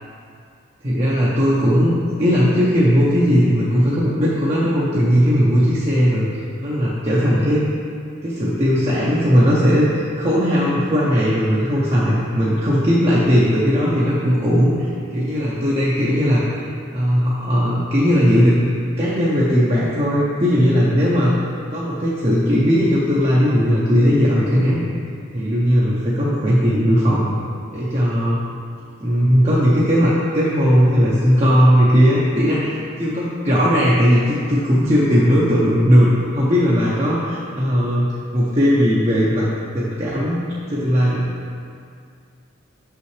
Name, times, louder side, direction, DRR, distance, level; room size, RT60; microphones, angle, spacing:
voice 1, 0.8-6.3 6.6-7.6 8.2-16.6 16.9-24.9 25.3-27.3 27.7-28.4 29.0-39.5 39.7-41.3, equal, 30° right, -7 dB, 0.7 m, -17 dB
6.8 x 5.6 x 3.2 m, 2.3 s
head